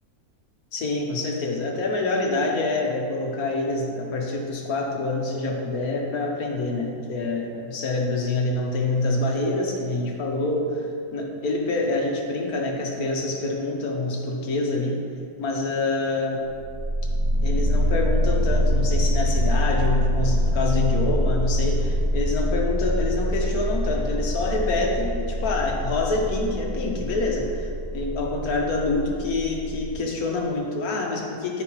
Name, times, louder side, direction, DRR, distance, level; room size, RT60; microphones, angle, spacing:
voice 1, 0.7-15.0 15.4-16.4 17.4-31.6, left 2 dB, 65° left, 0 dB, 1.5 m, -26 dB
sound 1, 16.6-29.9, equal, 5° left, 1.6 m, -25 dB
13.5 x 4.8 x 3.1 m, 2.3 s
omnidirectional pair, 1.7 m